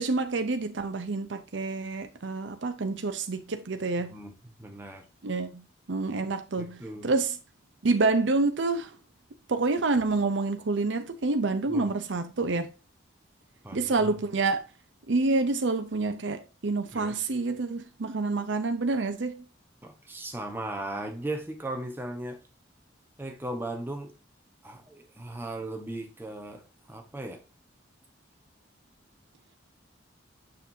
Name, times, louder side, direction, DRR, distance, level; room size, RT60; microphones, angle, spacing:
voice 1, 0.0-4.2 5.2-5.6 5.9-7.4 7.8-8.9 9.5-12.7 13.7-14.6 15.1-19.4, right 3 dB, 70° right, 0.7 m, -28 dB
voice 2, 4.0-4.3 4.6-5.0 6.6-7.1 11.7-11.9 13.6-14.1 16.9-17.2 19.8-22.4 23.2-24.1 24.6-27.4, right 1 dB, 10° right, 1.1 m, -37 dB
6.8 x 6.5 x 2.7 m
head